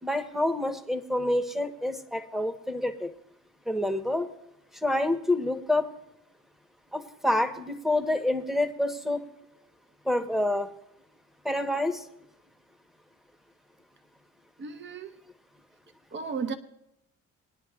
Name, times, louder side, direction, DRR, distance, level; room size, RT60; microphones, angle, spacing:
voice 1, 0.0-3.1 3.7-4.3 4.8-5.9 6.9-9.3 10.0-10.7 11.4-12.0, left 1 dB, ahead, 7 dB, 1.1 m, -27 dB
voice 2, 14.6-15.1 16.1-16.5, right 5 dB, 40° right, 8 dB, 0.9 m, -34 dB
21.0 x 10.0 x 2.4 m, 0.81 s
cardioid pair, 90°, 30 cm